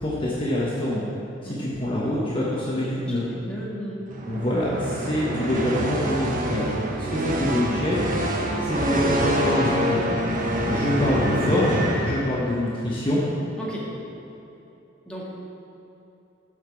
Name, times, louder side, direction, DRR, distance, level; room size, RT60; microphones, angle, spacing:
voice 1, 0.0-1.0 1.4-3.2 4.2-6.7 7.0-8.0 8.6-10.2 10.6-13.2, left 1 dB, 25° left, -7 dB, 1.2 m, -25 dB
voice 2, 2.9-4.0 13.6-14.0 15.0-15.3, equal, 5° left, -6 dB, 1.7 m, -35 dB
sound 1, 4.1-12.7, right 1 dB, 40° right, 0.9 m, -26 dB
7.8 x 5.8 x 7.0 m, 3.0 s
head